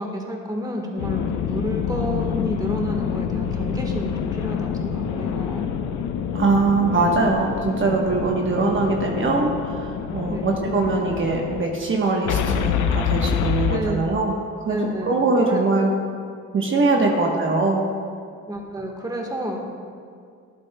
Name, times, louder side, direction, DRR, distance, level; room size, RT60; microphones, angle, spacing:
voice 1, 0.0-5.7 10.3-10.5 13.7-14.0 14.7-15.7 17.1-17.5 18.5-19.6, equal, 10° right, 1 dB, 1.3 m, -30 dB
sound 1, 1.0-11.6 12.2-13.8, left 8 dB, 80° left, 0.6 m, -26 dB
voice 2, 6.3-14.3 14.6-15.9 16.5-17.9, right 3 dB, 40° right, 0 dB, 1.1 m, -22 dB
11.5 x 11.0 x 2.2 m, 2.2 s
cardioid pair, 90°, 30 cm